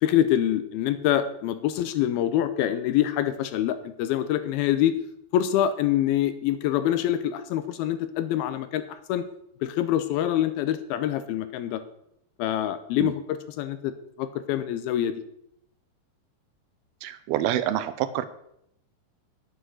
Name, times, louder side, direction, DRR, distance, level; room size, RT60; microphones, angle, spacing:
voice 1, 0.0-5.0 5.3-9.3 9.6-11.8 12.4-13.9 14.2-15.2, left 11 dB, 80° left, 12 dB, 2.4 m, -25 dB
voice 2, 17.0-18.3, right 12 dB, 80° right, 13 dB, 2.4 m, -27 dB
9.8 x 8.0 x 6.4 m, 0.76 s
omnidirectional pair, 4.6 m